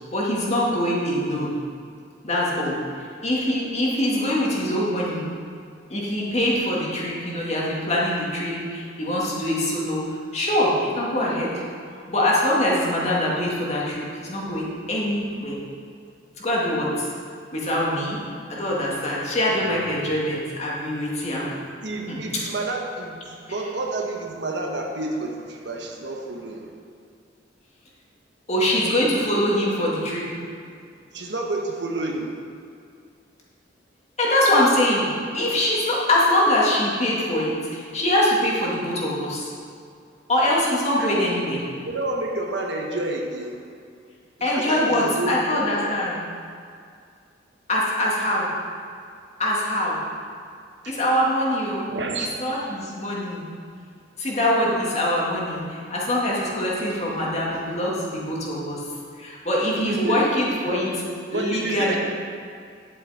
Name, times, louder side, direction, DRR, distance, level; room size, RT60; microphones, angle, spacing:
voice 1, 0.1-1.5 2.2-2.8 3.2-5.2 5.9-10.0 10.3-11.5 12.1-15.6 16.4-17.1 17.5-18.2 18.5-21.7 22.1-22.5 23.5-23.6 28.5-30.3 34.2-39.5 40.3-41.6 44.4-46.2 47.7-48.5 49.4-50.0 50.9-51.9 52.2-53.5 54.2-58.8 59.2-60.9 61.3-62.0, left 1 dB, 35° left, -4 dB, 2.1 m, -23 dB
voice 2, 2.6-3.0 21.8-26.7 31.1-32.4 41.0-41.3 41.8-43.6 44.4-45.9 50.8-51.0 51.9-52.3 59.8-60.2 60.7-60.9 61.3-62.0, right 2 dB, 65° right, 1 dB, 1.2 m, -29 dB
10.5 x 8.2 x 4.2 m, 2.3 s
head